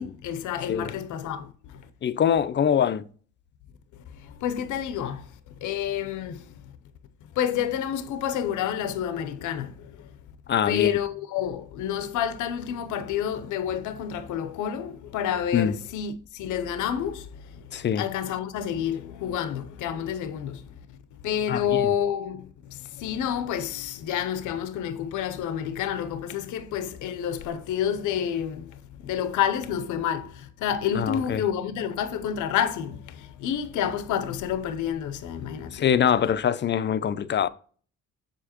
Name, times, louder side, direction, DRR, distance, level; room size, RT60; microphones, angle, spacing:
voice 1, 0.0-1.8 4.1-5.3 5.6-6.5 7.4-10.1 10.7-17.7 17.9-20.7 21.2-36.3, left 9 dB, 80° left, 0.6 m, -29 dB
voice 2, 2.0-3.1 10.5-10.9 15.5-15.7 17.7-18.0 21.5-21.8 30.9-31.4 35.7-37.5, left 8 dB, 40° left, 0.4 m, -23 dB
6.8 x 4.9 x 2.9 m
cardioid pair, 90°, 30 cm